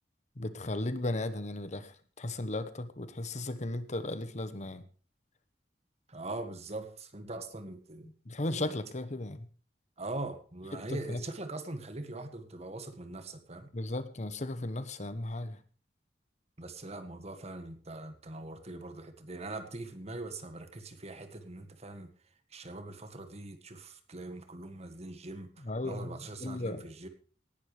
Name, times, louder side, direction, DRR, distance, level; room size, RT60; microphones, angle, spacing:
voice 1, 0.4-4.8 8.3-9.5 10.7-10.8 11.1-11.2 13.7-15.6 25.6-26.8, left 2 dB, 45° left, 12 dB, 1.1 m, -36 dB
voice 2, 6.1-8.1 8.5-8.8 10.0-13.7 16.6-22.1 22.5-27.1, right 2 dB, 40° right, 9 dB, 1.9 m, -42 dB
18.0 x 11.5 x 3.3 m, 0.39 s
head